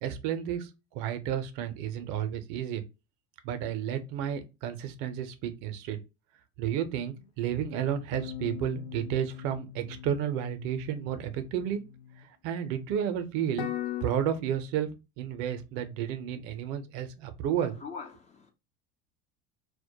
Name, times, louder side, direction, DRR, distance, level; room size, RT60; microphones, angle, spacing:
voice 1, 0.0-2.8 3.4-6.0 6.6-11.8 12.4-13.7 14.0-14.9 15.2-17.7, right 9 dB, 60° right, 0.5 m, -32 dB
sound 1, 8.1-12.2 13.6-14.0, left 12 dB, 70° left, 0.5 m, -40 dB
voice 2, 17.6-18.5, left 5 dB, 20° left, 0.4 m, -43 dB
2.2 x 2.0 x 2.8 m
hypercardioid pair, 75°, 36 cm